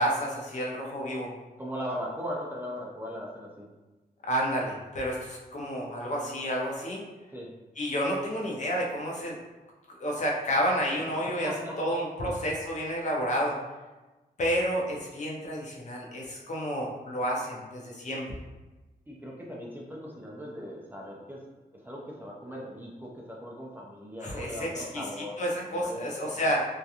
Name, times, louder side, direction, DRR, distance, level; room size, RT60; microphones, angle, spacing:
voice 1, 0.0-1.3 4.3-7.0 7.8-9.4 10.0-11.5 11.8-13.6 14.4-18.2 24.2-25.0 25.4-26.6, equal, 45° left, -2 dB, 0.5 m, -30 dB
voice 2, 1.6-3.7 7.3-7.5 11.2-11.8 12.2-12.4 19.1-21.4 21.8-25.4 25.6-26.0 26.3-26.5, equal, 10° right, -4 dB, 0.3 m, -38 dB
2.7 x 2.3 x 2.3 m, 1.1 s
wide cardioid pair, 170°, 16 cm